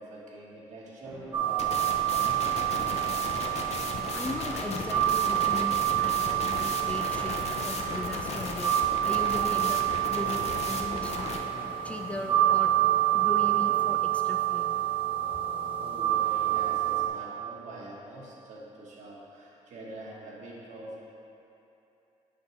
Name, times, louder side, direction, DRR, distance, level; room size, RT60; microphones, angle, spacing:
voice 1, 0.0-3.2 9.0-9.3 15.7-21.0, right 1 dB, 70° right, -4 dB, 1.4 m, -45 dB
sound 1, 1.0-14.0, equal, 5° right, 0.9 m, -48 dB
sound 2, 1.3-17.1, right 13 dB, 40° right, 1.0 m, -28 dB
sound 3, 1.6-11.4, left 4 dB, 55° left, 0.6 m, -36 dB
voice 2, 4.1-8.8 9.0-9.8 10.1-11.4 11.8-12.7 13.1-14.8, left 1 dB, 10° left, 2 dB, 0.4 m, -38 dB
8.2 x 5.6 x 3.1 m, 2.9 s
cardioid pair, 110°, 13 cm